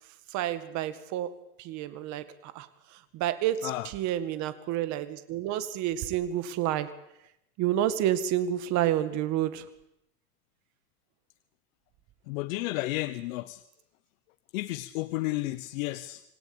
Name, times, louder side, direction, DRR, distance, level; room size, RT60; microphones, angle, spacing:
voice 1, 0.3-1.3 1.6-2.7 3.1-6.9 7.6-9.7, right 12 dB, 40° right, 11 dB, 2.0 m, -29 dB
voice 2, 12.3-13.6 14.5-16.2, left 18 dB, 60° left, 12 dB, 1.1 m, -32 dB
26.5 x 17.5 x 8.9 m, 0.83 s
supercardioid pair, 155°, 45 cm